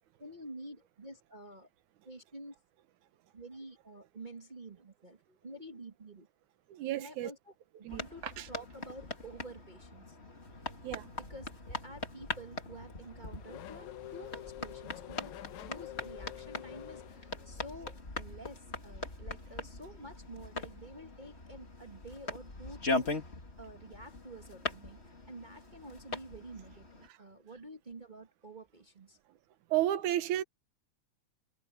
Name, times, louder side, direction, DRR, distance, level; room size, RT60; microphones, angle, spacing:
voice 1, 0.2-1.7 2.0-2.5 3.3-6.3 6.9-7.5 7.9-10.2 10.5-10.6 11.2-29.2, right 1 dB, 45° right, 0.6 m, -49 dB
voice 2, 6.7-7.3 7.8-8.5 10.8-11.1 27.1-27.2 29.7-30.4, right 13 dB, 85° right, 2.5 m, -33 dB
sound 1, 7.9-27.1, left 2 dB, 25° left, 2.4 m, -41 dB
Race car auto racing / Accelerating revving vroom, 12.3-17.8, left 13 dB, 80° left, 2.2 m, -48 dB
omnidirectional pair, 3.3 m